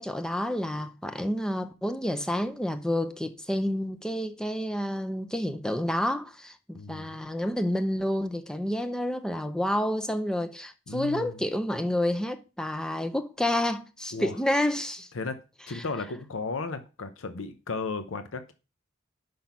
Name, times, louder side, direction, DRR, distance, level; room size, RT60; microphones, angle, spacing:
voice 1, 0.0-15.1 15.7-15.8, left 1 dB, 5° left, 0.5 m, -29 dB
voice 2, 6.7-7.2 10.9-11.4 14.1-14.4 15.1-15.4 15.7-18.5, left 4 dB, 90° left, 0.7 m, -35 dB
5.8 x 5.2 x 5.8 m
head